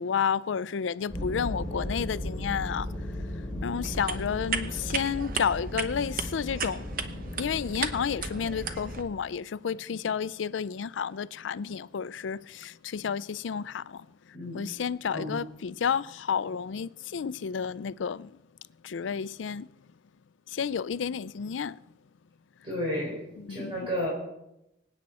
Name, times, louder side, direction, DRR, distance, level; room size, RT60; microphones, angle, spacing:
voice 1, 0.0-2.9 3.6-7.0 7.4-14.1 14.5-18.3 18.8-19.7 20.5-21.8 23.4-23.9, left 7 dB, 90° left, 0.4 m, -31 dB
sound 1, 1.1-9.0, left 1 dB, 5° left, 3.0 m, -36 dB
voice 2, 3.5-3.8 14.3-14.6 15.1-15.4 22.6-24.1, equal, 30° right, 4.1 m, -33 dB
sound 2, 3.8-9.0, right 6 dB, 50° right, 0.9 m, -36 dB
25.5 x 8.9 x 4.2 m
head